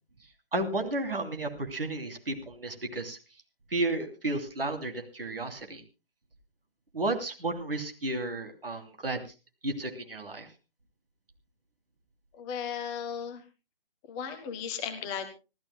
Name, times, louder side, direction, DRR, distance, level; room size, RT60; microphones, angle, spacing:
voice 1, 0.5-3.2 3.7-5.8 6.9-9.2 9.6-10.5, right 2 dB, 70° right, 5 dB, 3.0 m, -32 dB
voice 2, 12.3-13.4 14.1-15.3, left 8 dB, 10° left, 7 dB, 0.8 m, -35 dB
26.5 x 13.5 x 2.2 m, 0.30 s
figure-of-eight pair, 135°, 30 cm